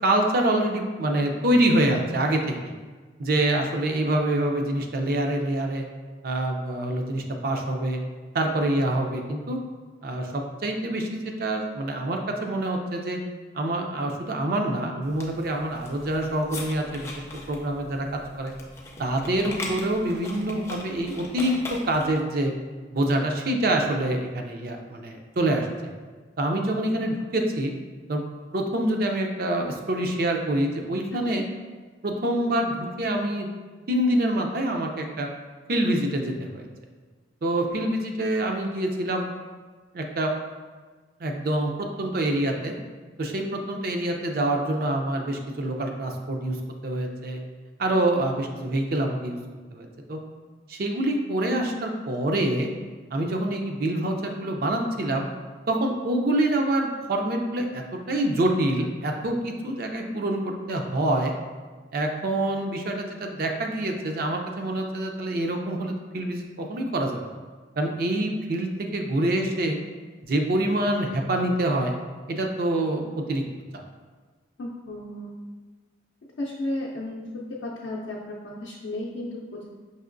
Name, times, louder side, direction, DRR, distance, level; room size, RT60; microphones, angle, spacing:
voice 1, 0.0-2.5 3.2-5.8 6.2-8.0 8.3-9.6 10.0-13.2 13.5-18.1 18.4-18.5 19.0-22.5 22.9-25.7 26.4-27.7 28.1-28.2 28.5-31.4 32.0-33.5 33.9-35.3 35.7-36.7 37.4-39.3 39.9-40.3 41.2-42.7 43.2-46.6 46.8-47.4 47.8-49.4 49.7-50.2 50.7-52.7 53.1-55.3 55.7-61.3 61.9-67.3 67.8-69.8 70.2-71.9 72.3-73.4 73.7-73.8, right 1 dB, 50° right, 3 dB, 0.5 m, -26 dB
sound 1, 15.0-22.2, left 1 dB, 15° left, 0.4 m, -40 dB
voice 2, 31.1-31.4 74.6-75.3 76.4-77.2 77.6-79.7, left 1 dB, 75° left, -4 dB, 0.5 m, -33 dB
5.4 x 2.9 x 2.5 m, 1.4 s
head